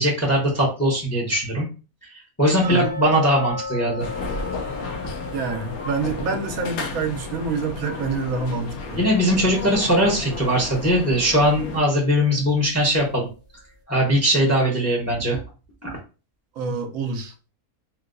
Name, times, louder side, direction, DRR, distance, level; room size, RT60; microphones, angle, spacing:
voice 1, 0.0-1.6 2.4-4.1 9.0-13.3 13.9-15.4 15.8-15.9, equal, 15° left, 0.6 m, -20 dB
sound 1, 2.6-9.5 9.8-9.9 10.4-10.5 11.0-11.1, left 4 dB, 40° right, 0.7 m, -36 dB
sound 2, 4.0-11.8, left 4 dB, 85° left, 1.1 m, -33 dB
voice 2, 5.3-9.0 16.5-17.3, right 4 dB, 75° right, 1.1 m, -27 dB
3.3 x 2.7 x 2.5 m
omnidirectional pair, 1.5 m